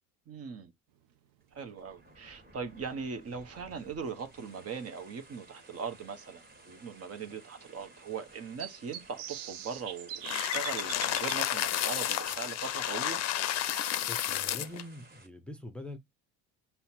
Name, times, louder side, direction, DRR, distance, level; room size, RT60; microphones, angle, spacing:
voice 1, 0.3-0.7 1.5-13.2, right 6 dB, 40° right, 0.9 m, -40 dB
sound 1, 1.4-15.3, right 2 dB, 25° right, 1.8 m, -57 dB
sound 2, 3.0-3.1 5.1-5.2 5.7-5.8 6.1-6.2 8.6-11.4, right 10 dB, 70° right, 0.7 m, -41 dB
sound 3, 10.2-14.8, left 12 dB, 45° left, 0.6 m, -31 dB
voice 2, 14.1-16.0, left 1 dB, 5° left, 0.7 m, -44 dB
5.6 x 2.2 x 4.2 m
supercardioid pair, 95°, 36 cm